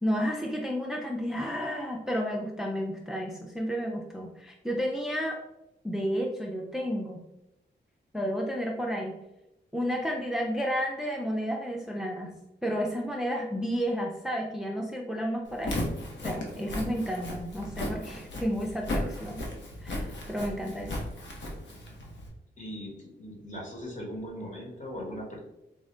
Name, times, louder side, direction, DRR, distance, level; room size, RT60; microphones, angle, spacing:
voice 1, 0.0-5.4 5.8-7.2 8.1-9.2 9.7-12.3 12.6-15.8 16.2-19.4 19.8-21.0, equal, 5° right, 0 dB, 0.5 m, -31 dB
Walk footsteps, 15.5-22.3, left 1 dB, 80° left, 0.9 m, -35 dB
voice 2, 22.6-25.4, equal, 40° left, -2 dB, 1.4 m, -39 dB
3.6 x 2.5 x 3.2 m, 0.89 s
cardioid pair, 65°, 19 cm